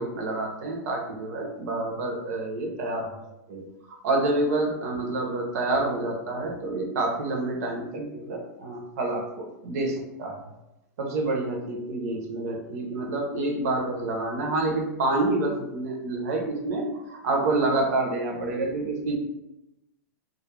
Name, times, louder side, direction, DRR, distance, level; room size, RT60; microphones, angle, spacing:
voice 1, 0.0-3.2 3.5-3.6 4.0-10.4 11.0-19.1, right 2 dB, 65° right, 2 dB, 0.7 m, -28 dB
2.3 x 2.1 x 3.1 m, 0.92 s
supercardioid pair, 155°, 9 cm